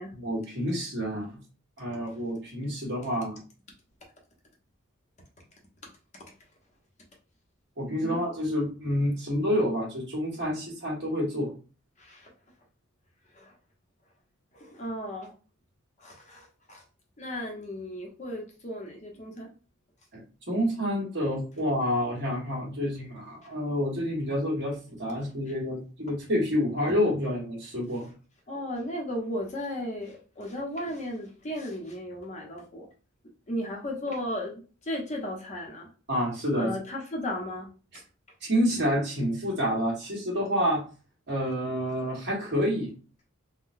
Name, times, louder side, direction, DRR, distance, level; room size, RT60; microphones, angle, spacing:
voice 1, 0.1-1.4 1.8-3.4 7.8-11.5 20.1-28.1 36.1-36.7 37.9-38.0 38.4-40.9 41.3-42.9, equal, 55° right, -3 dB, 1.4 m, -28 dB
voice 2, 12.0-12.3 13.3-13.5 14.5-15.3 16.0-16.8 17.2-19.5 28.5-32.9 33.5-35.9 36.6-37.7, left 1 dB, 35° left, 0 dB, 0.7 m, -35 dB
3.7 x 2.1 x 2.6 m, 0.35 s
head